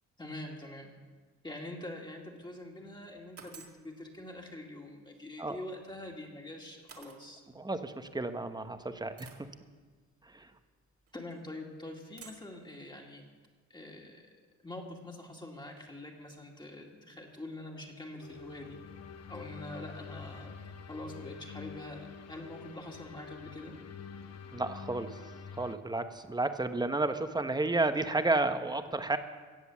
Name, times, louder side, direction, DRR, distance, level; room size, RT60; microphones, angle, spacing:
voice 1, 0.2-0.9 1.4-7.4 11.1-13.2 13.7-14.3 14.6-18.8 19.3-20.6 20.9-23.8, left 1 dB, 15° left, 0 dB, 2.2 m, -45 dB
sound 1, 2.2-2.6 3.4-3.8 5.9-6.0 6.9-7.2 8.1-8.2 9.2-9.5 11.1-11.4 12.2-12.5, right 6 dB, 50° right, 2.3 m, -52 dB
voice 2, 7.6-9.3 10.3-10.5 24.5-25.2 25.6-29.2, right 2 dB, 15° right, 9 dB, 1.0 m, -31 dB
sound 2, 18.2-25.8, left 5 dB, 60° left, 1.0 m, -47 dB
16.5 x 7.9 x 7.3 m, 1.4 s
cardioid pair, 90°, 30 cm